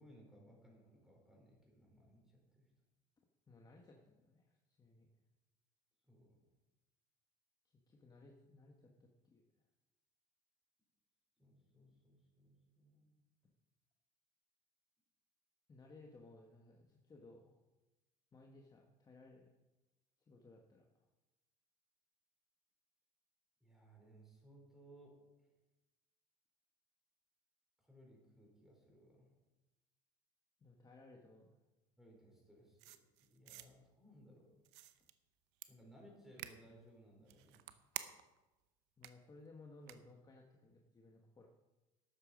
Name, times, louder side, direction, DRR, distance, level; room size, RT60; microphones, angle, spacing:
voice 1, 0.0-2.7 6.1-6.4 11.4-13.2 23.6-25.1 27.8-29.3 32.0-34.5 35.7-37.6, right 1 dB, ahead, -2 dB, 4.6 m, -63 dB
voice 2, 3.5-5.1 7.7-9.4 15.7-17.6 18.3-19.5 20.2-20.9 30.6-31.6 39.0-41.5, left 2 dB, 20° left, 1 dB, 1.3 m, -60 dB
sound 1, 32.8-33.7 34.7-35.1 35.6-35.7 36.4-36.6 37.2-38.4 39.0-39.1 39.9-40.0, right 14 dB, 75° right, 0.8 m, -48 dB
12.5 x 8.4 x 5.1 m, 1.1 s
cardioid pair, 120°, 18 cm